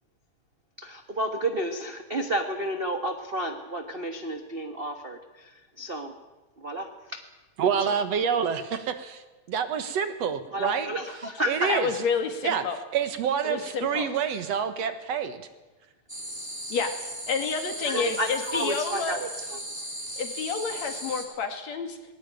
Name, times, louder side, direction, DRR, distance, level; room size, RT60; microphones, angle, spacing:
voice 1, 0.8-6.1 6.6-7.2 7.9-8.0 10.5-11.7 17.8-19.6, right 1 dB, 40° right, 5 dB, 0.8 m, -31 dB
voice 2, 7.6-9.2 9.5-10.9 11.5-11.9 12.4-12.6 12.9-15.4, right 7 dB, 65° right, 9 dB, 2.3 m, -27 dB
voice 3, 11.7-12.8 13.4-14.1 16.7-19.2 20.2-22.0, left 5 dB, 65° left, 6 dB, 3.4 m, -29 dB
sound 1, 16.1-21.2, equal, 5° right, 3.6 m, -37 dB
20.5 x 18.0 x 9.1 m, 1.1 s
omnidirectional pair, 3.3 m